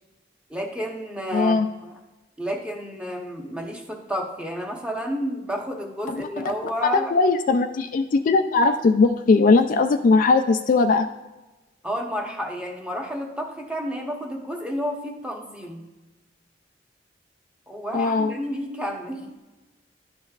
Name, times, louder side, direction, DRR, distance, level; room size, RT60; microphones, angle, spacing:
voice 1, 0.5-1.9 2.4-7.1 11.8-15.8 17.7-19.3, equal, 5° right, 0 dB, 1.0 m, -31 dB
voice 2, 1.3-1.7 6.1-6.5 6.8-11.1 17.9-18.3, left 3 dB, 45° left, 7 dB, 0.3 m, -19 dB
11.5 x 5.1 x 2.4 m, 1.1 s
head